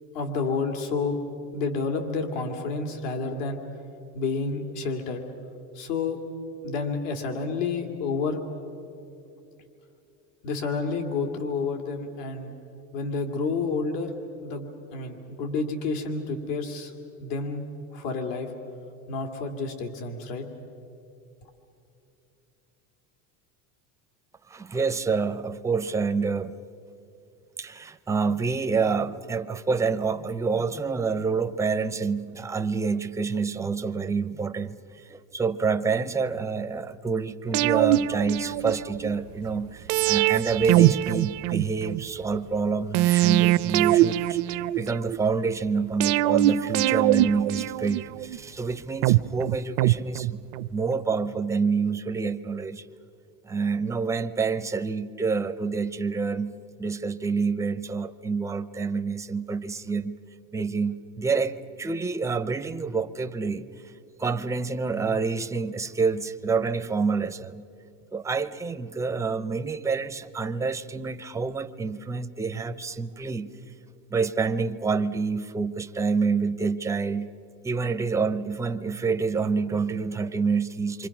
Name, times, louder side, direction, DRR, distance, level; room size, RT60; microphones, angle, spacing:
voice 1, 0.1-1.2 1.5-3.6 4.1-5.2 5.8-6.2 6.6-8.4 10.4-12.5 12.9-14.1 14.4-16.9 17.2-17.7 17.9-18.5 19.1-20.4, left 4 dB, 75° left, 5 dB, 2.5 m, -29 dB
voice 2, 24.5-26.5 27.6-34.8 35.1-50.4 50.7-52.9 53.4-56.5 56.8-60.2 60.5-63.7 64.2-67.6 68.1-73.5 74.1-77.3 77.6-81.1, right 5 dB, 10° right, 10 dB, 0.5 m, -27 dB
sound 1, 37.5-39.1 39.9-42.0 42.9-45.2 46.0-48.4 49.0-50.7 51.0-51.1, right 15 dB, 70° right, 0.6 m, -23 dB
28.5 x 25.0 x 6.0 m, 2.7 s
cardioid pair, 140°, 37 cm